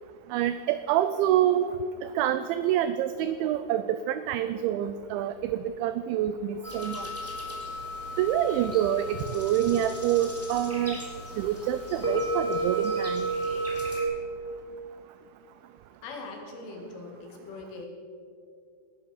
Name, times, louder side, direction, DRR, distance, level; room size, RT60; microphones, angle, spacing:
voice 1, 0.3-1.7 2.0-7.3 8.2-11.0 11.4-13.3, right 11 dB, 90° right, 12 dB, 2.6 m, -27 dB
sound 1, 6.6-14.0, right 2 dB, 5° right, 2.3 m, -33 dB
voice 2, 16.0-17.9, left 3 dB, 70° left, 1 dB, 4.7 m, -41 dB
18.0 x 11.5 x 6.5 m, 2.4 s
omnidirectional pair, 5.9 m